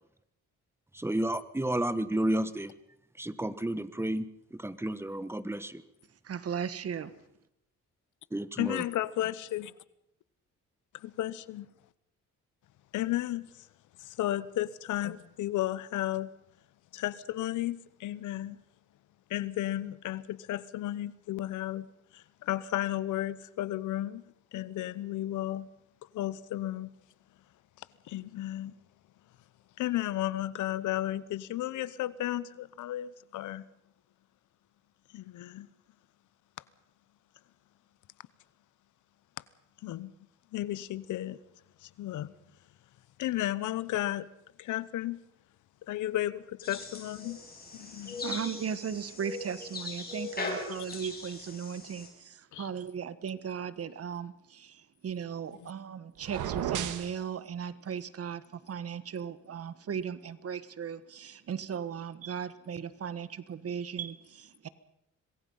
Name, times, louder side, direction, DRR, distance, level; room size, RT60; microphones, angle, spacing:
voice 1, 0.9-2.7 3.2-5.8 8.3-8.8, right 1 dB, 10° right, 1.3 m, -31 dB
voice 2, 6.2-7.1 47.8-47.9 48.2-64.7, right 7 dB, 50° right, 1.4 m, -37 dB
voice 3, 8.6-9.7 10.9-11.7 12.9-13.5 14.0-16.3 16.9-18.6 19.3-24.2 24.5-25.7 26.1-26.9 27.8-28.7 29.8-33.7 35.1-35.7 39.8-40.1 40.5-41.4 41.8-42.3 43.2-44.3 44.6-45.2 45.9-47.4 47.7-48.2 52.5-52.7, left 14 dB, 80° left, 1.0 m, -33 dB
sound 1, 46.6-52.1, left 3 dB, 30° left, 7.4 m, -40 dB
sound 2, 56.2-57.1, right 10 dB, 85° right, 1.8 m, -33 dB
26.0 x 21.0 x 5.6 m
cardioid pair, 90°, 30 cm